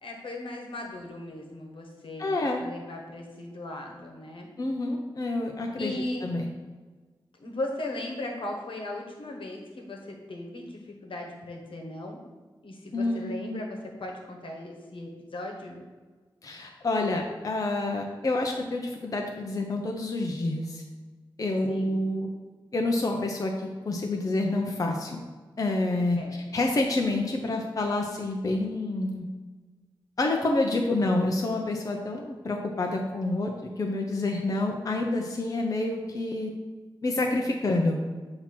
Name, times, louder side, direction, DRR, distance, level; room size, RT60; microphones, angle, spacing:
voice 1, 0.0-4.5 5.8-6.2 7.4-12.2 12.6-15.8 21.7-22.0 26.1-26.6, left 1 dB, 80° left, 0 dB, 1.2 m, -37 dB
voice 2, 2.2-2.6 4.6-5.9 6.2-6.5 12.9-13.6 16.4-20.8 21.4-22.3 22.7-25.2 25.6-26.2 26.5-29.3 30.2-36.5 37.0-38.0, left 2 dB, 40° left, 1 dB, 0.6 m, -28 dB
7.2 x 2.9 x 5.9 m, 1.4 s
wide cardioid pair, 125°, 9 cm